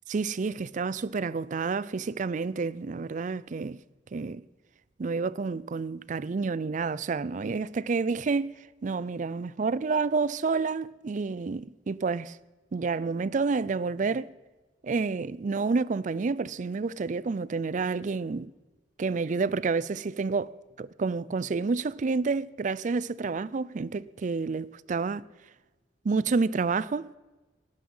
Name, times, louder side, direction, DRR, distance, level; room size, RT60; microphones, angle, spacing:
voice 1, 0.1-3.8 4.1-4.4 5.0-12.4 12.7-14.3 14.8-18.5 19.0-25.2 26.0-27.1, right 4 dB, 45° right, 0.4 m, -29 dB
17.5 x 12.0 x 5.6 m
head